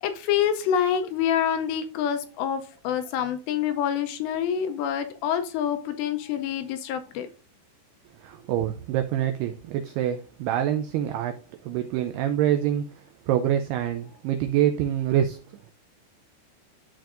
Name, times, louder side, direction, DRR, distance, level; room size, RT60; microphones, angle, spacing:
voice 1, 0.0-7.3, left 9 dB, 80° left, 2.6 m, -26 dB
voice 2, 8.2-11.4 11.6-12.9 13.3-15.4, right 11 dB, 85° right, 2.3 m, -25 dB
13.0 x 4.5 x 2.5 m
omnidirectional pair, 5.3 m